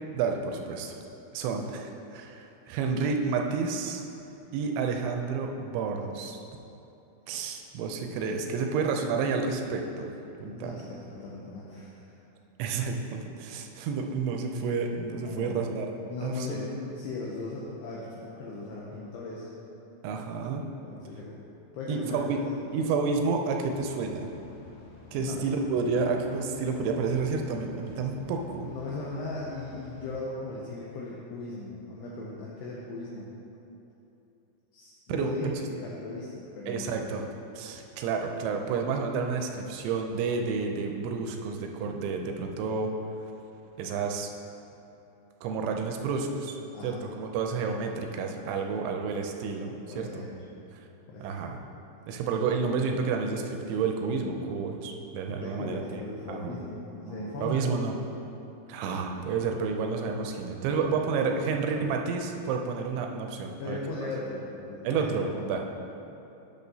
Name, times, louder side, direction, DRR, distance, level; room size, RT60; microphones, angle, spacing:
voice 1, 0.1-1.0 1.3-4.0 4.5-6.4 7.3-10.1 10.4-10.8 12.6-15.9 16.2-16.7 20.0-20.6 21.9-22.4 22.7-24.3 25.1-28.7 35.1-35.6 36.7-37.2 37.6-42.9 43.8-44.3 45.4-46.5 46.8-50.4 51.2-51.6 52.1-56.0 56.3-56.5 57.4-58.0 58.7-63.8 64.8-65.8, right 5 dB, 85° right, 3 dB, 2.7 m, -30 dB
voice 2, 10.4-12.2 15.2-15.7 16.1-19.5 20.8-21.4 21.7-22.7 25.2-25.4 28.5-33.3 34.7-37.0 46.7-47.0 49.9-50.4 51.1-51.4 55.3-57.7 60.7-62.0 63.6-65.5, left 2 dB, 80° left, -5 dB, 2.4 m, -38 dB
sound 1, 23.7-30.1, left 4 dB, 60° left, 2.1 m, -50 dB
sound 2, 56.4-58.8 59.1-61.4, right 2 dB, 65° right, 1.9 m, -47 dB
10.5 x 6.6 x 2.7 m, 2.9 s
omnidirectional pair, 5.6 m